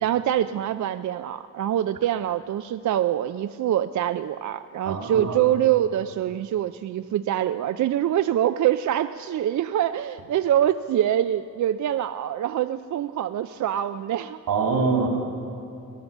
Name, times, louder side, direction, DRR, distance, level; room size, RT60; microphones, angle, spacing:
voice 1, 0.0-14.4, right 11 dB, 60° right, 10 dB, 0.4 m, -24 dB
voice 2, 4.8-5.4 14.5-15.1, right 4 dB, 90° right, 1 dB, 3.2 m, -24 dB
17.5 x 11.5 x 7.2 m, 2.7 s
cardioid pair, 125°, 33 cm